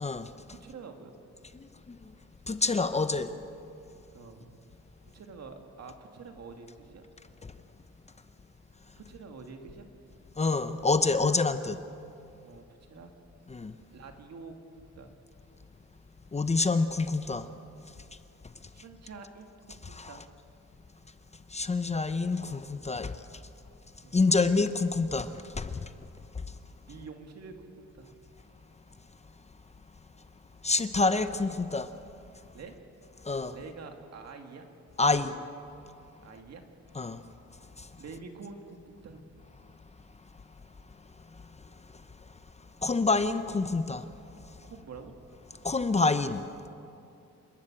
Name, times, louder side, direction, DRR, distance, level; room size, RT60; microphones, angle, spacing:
voice 1, 0.0-0.3 1.5-2.1 2.5-3.3 10.4-11.8 13.5-13.7 16.3-17.5 19.8-20.2 21.5-23.2 24.1-25.9 30.6-31.9 33.2-33.6 35.0-35.3 37.0-37.2 37.8-37.9 42.8-44.1 45.6-46.4, left 3 dB, 20° left, 0.8 m, -27 dB
voice 2, 0.6-1.2 4.1-4.6 5.1-7.0 9.0-9.9 12.4-13.2 13.9-15.1 18.7-20.2 22.8-23.1 24.0-24.5 26.9-28.2 32.5-32.7 33.5-34.7 35.1-35.3 36.2-36.6 38.0-39.3 44.6-45.1, right 4 dB, 60° right, 2.4 m, -47 dB
28.0 x 12.5 x 8.7 m
cardioid pair, 110°, 29 cm